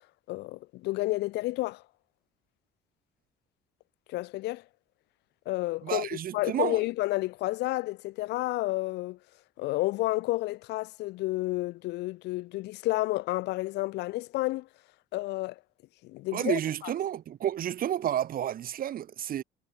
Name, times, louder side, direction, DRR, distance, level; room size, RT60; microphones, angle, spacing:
voice 1, 0.3-1.8 4.1-4.6 5.4-9.2 9.6-14.7 15.1-15.6 16.0-16.9, left 19 dB, 85° left, 1.7 m, -31 dB
voice 2, 5.8-6.8 16.3-19.4, right 11 dB, 60° right, 4.2 m, -31 dB
cardioid pair, 110°, 17 cm